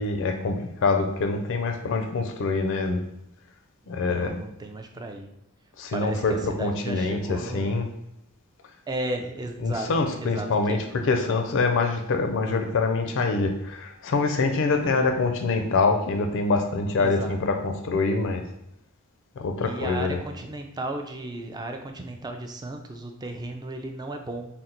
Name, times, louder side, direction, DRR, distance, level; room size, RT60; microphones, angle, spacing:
voice 1, 0.0-3.0 3.9-4.4 5.8-7.9 9.6-18.4 19.4-20.2, left 3 dB, 60° left, 5 dB, 0.4 m, -25 dB
voice 2, 3.8-5.3 5.9-7.7 8.9-10.8 14.6-15.0 17.0-17.3 19.6-24.5, right 2 dB, 20° right, 4 dB, 0.4 m, -35 dB
3.8 x 2.1 x 4.2 m, 0.81 s
head